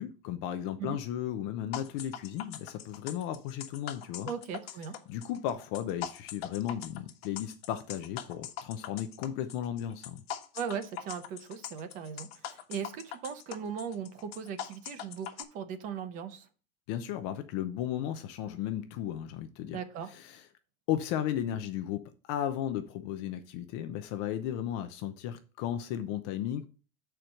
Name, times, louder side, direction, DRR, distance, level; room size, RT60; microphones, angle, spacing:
voice 1, 0.0-4.3 5.1-10.2 16.9-19.8 20.1-20.4 20.9-26.6, left 10 dB, 30° left, 0.4 m, -35 dB
sound 1, 1.7-15.4, left 10 dB, 80° left, 1.1 m, -42 dB
voice 2, 4.3-5.0 10.5-16.5 19.7-20.1, right 7 dB, 25° right, 0.6 m, -38 dB
6.6 x 4.5 x 6.3 m
supercardioid pair, 175°, 30 cm